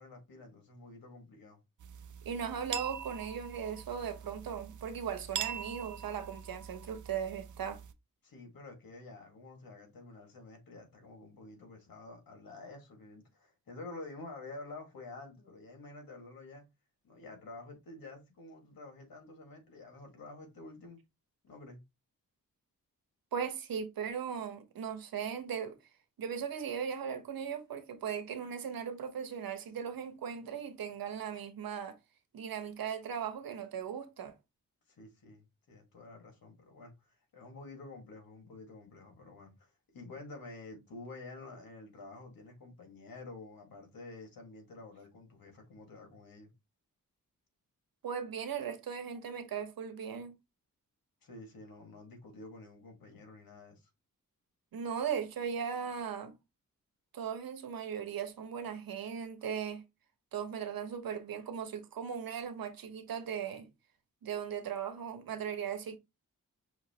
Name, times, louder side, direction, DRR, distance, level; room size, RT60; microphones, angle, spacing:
voice 1, 0.0-1.6 8.2-16.7 17.0-21.0 21.4-21.8 34.9-46.5 51.2-53.9, left 2 dB, 90° left, 1.7 m, -49 dB
sound 1, 1.8-7.9, right 9 dB, 60° right, 0.6 m, -43 dB
voice 2, 2.2-7.8 23.3-25.8 26.2-32.0 32.3-34.3 48.0-50.3 54.7-56.4 57.1-59.8 60.3-63.7 64.2-66.0, right 7 dB, 85° right, 0.9 m, -38 dB
5.8 x 3.0 x 2.8 m
cardioid pair, 60°, 34 cm